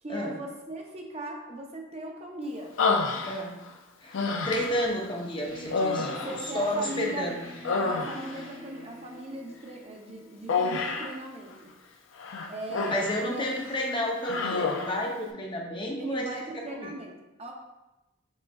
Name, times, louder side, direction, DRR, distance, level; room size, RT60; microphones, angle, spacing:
voice 1, 0.0-2.7 6.0-7.3 7.9-11.7 12.5-13.4 16.0-17.5, right 1 dB, 30° right, 1 dB, 0.6 m, -38 dB
Human voice, 2.8-3.7 4.1-4.9 5.7-7.1 7.4-8.5 10.5-11.2 12.2-13.2 13.6-13.8 14.2-15.0, left 4 dB, 75° left, 0.5 m, -29 dB
voice 2, 4.0-6.1 6.5-7.4 12.9-16.4 16.8-16.9, left 1 dB, 25° left, 0 dB, 0.6 m, -31 dB
sound 1, 5.5-10.9, equal, 65° right, 1.0 m, -47 dB
6.1 x 3.7 x 2.3 m, 0.99 s
head